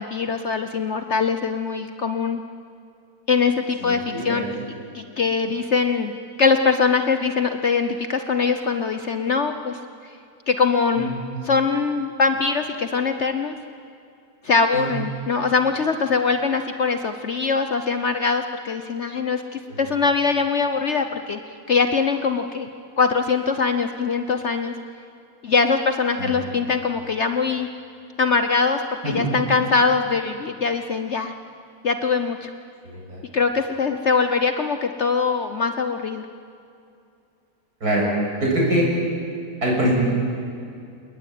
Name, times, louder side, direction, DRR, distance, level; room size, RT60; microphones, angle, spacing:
voice 1, 0.0-2.4 3.3-4.5 4.9-6.1 6.4-9.8 10.5-11.1 11.4-13.5 14.4-21.4 21.7-22.7 23.0-24.7 25.4-27.7 28.2-31.3 31.8-32.5 33.3-36.2, left 5 dB, 50° left, 8 dB, 1.1 m, -22 dB
voice 2, 3.8-4.5 10.9-11.1 14.7-14.9 19.7-19.8 26.2-26.3 29.0-29.3 32.8-33.2 37.8-38.1 38.4-38.9 39.6-39.9, right 1 dB, 70° right, -2 dB, 7.4 m, -24 dB
28.5 x 19.5 x 9.1 m, 2.5 s
omnidirectional pair, 1.6 m